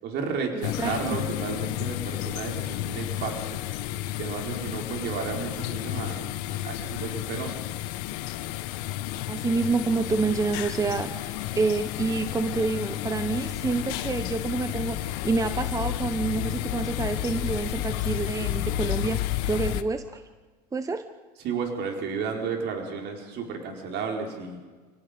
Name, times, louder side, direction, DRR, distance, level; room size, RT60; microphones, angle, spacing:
voice 1, 0.0-3.6 4.2-6.3 6.6-7.6 21.4-24.6, right 5 dB, 55° right, 2 dB, 4.6 m, -32 dB
voice 2, 0.5-0.9 9.3-20.2 20.7-21.0, right 4 dB, 15° right, 10 dB, 1.0 m, -28 dB
sound 1, 0.6-19.8, left 14 dB, 70° left, 1.2 m, -31 dB
29.5 x 18.0 x 5.2 m, 1.4 s
supercardioid pair, 110°, 21 cm